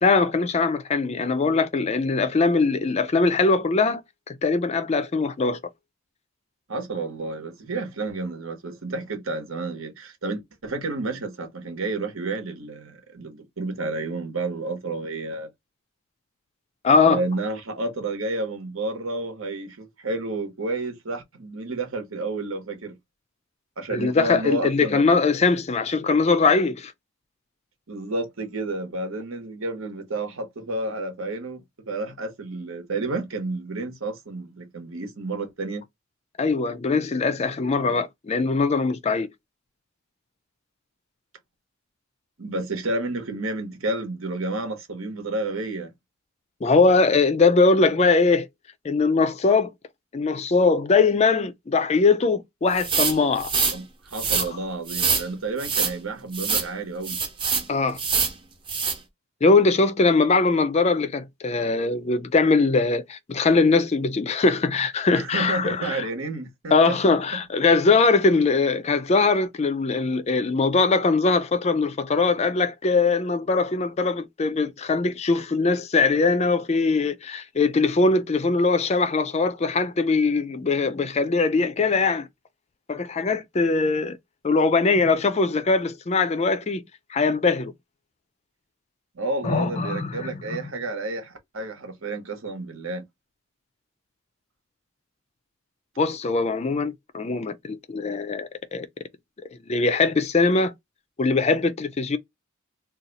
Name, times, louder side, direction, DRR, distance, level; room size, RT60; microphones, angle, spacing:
voice 1, 0.0-4.0 4.3-5.6 16.8-17.2 23.9-26.9 36.4-39.3 46.6-48.5 48.8-49.7 50.1-53.5 57.7-58.0 59.4-66.0 66.7-82.3 82.9-84.2 84.4-86.8 87.1-87.7 89.4-90.6 96.0-98.9 99.7-100.7 101.2-102.2, left 4 dB, 30° left, 0.4 m, -21 dB
voice 2, 6.7-15.5 17.0-23.0 23.8-25.0 27.9-31.6 31.9-35.8 42.4-45.9 53.7-57.2 65.1-67.4 89.1-93.0, right 2 dB, 75° right, 1.1 m, -30 dB
Deodorant spraying, 52.8-53.8 54.1-54.5 54.9-55.3 55.6-55.9 56.3-56.7 57.0-57.7 58.0-58.4 58.7-59.0, right 5 dB, 25° right, 0.9 m, -24 dB
2.7 x 2.3 x 3.9 m
head